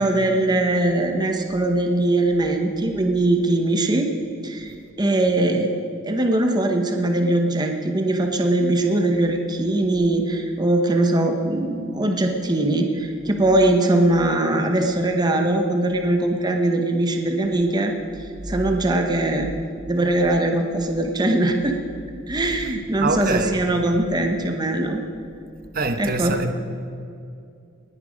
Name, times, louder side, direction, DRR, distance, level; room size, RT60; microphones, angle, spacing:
voice 1, 0.0-4.1 4.4-5.7 6.0-17.9 18.5-19.5 19.9-21.8 22.3-25.0 26.0-26.4, right 1 dB, 20° right, 0.9 m, -21 dB
voice 2, 22.3-23.6 25.7-26.5, right 3 dB, 45° right, 1.0 m, -26 dB
19.0 x 10.5 x 5.1 m
head